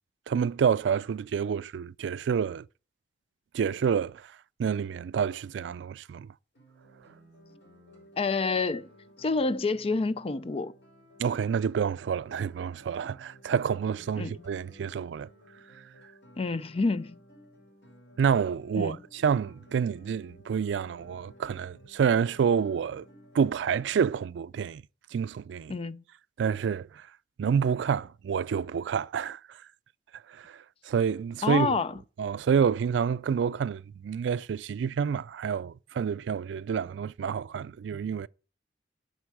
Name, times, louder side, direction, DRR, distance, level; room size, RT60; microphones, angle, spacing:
voice 1, 0.3-2.7 3.5-4.3 4.6-6.3 11.2-15.3 18.2-23.0 23.3-24.8 25.1-25.8 26.4-27.0 27.4-29.6 30.3-31.8 32.2-38.3, right 7 dB, 85° right, 0.3 m, -28 dB
Guitar, 6.5-23.9, equal, 80° left, 5.0 m, -55 dB
voice 2, 8.2-8.9 9.2-10.7 14.2-14.3 16.4-17.2 18.7-19.0 25.7-26.0 31.4-31.9, left 3 dB, 35° left, 0.4 m, -28 dB
8.1 x 5.3 x 7.4 m
head